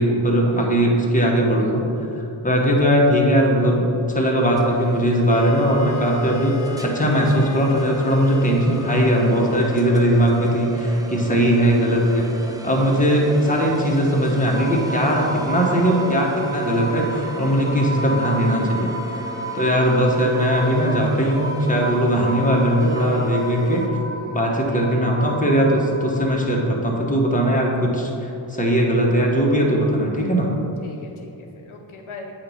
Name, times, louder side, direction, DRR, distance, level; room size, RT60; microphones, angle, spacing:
voice 1, 0.0-19.3 19.5-23.8 24.3-30.5, equal, 15° left, -2 dB, 1.2 m, -19 dB
sound 1, 4.4-23.9, right 1 dB, 10° right, 0.5 m, -35 dB
Wind instrument woodwind instrument, 5.3-9.7, left 3 dB, 40° left, 0.4 m, -35 dB
sound 2, 14.5-26.3, right 1 dB, 75° right, 0.8 m, -32 dB
voice 2, 23.0-23.4 24.7-25.1 30.8-32.3, left 3 dB, 85° left, 2 dB, 0.7 m, -41 dB
8.5 x 3.1 x 5.5 m, 2.8 s
wide cardioid pair, 50°, 47 cm